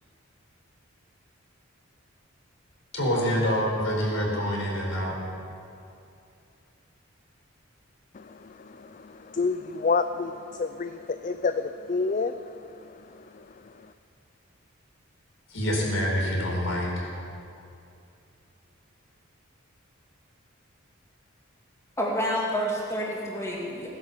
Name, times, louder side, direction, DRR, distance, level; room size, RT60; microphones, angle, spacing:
voice 1, 2.9-5.1 15.5-17.1, equal, 75° left, -2 dB, 4.2 m, -26 dB
voice 2, 8.1-13.9, left 4 dB, 40° left, 10 dB, 0.4 m, -30 dB
voice 3, 22.0-23.9, equal, 15° left, -4 dB, 2.6 m, -28 dB
17.0 x 10.5 x 7.4 m, 2.6 s
head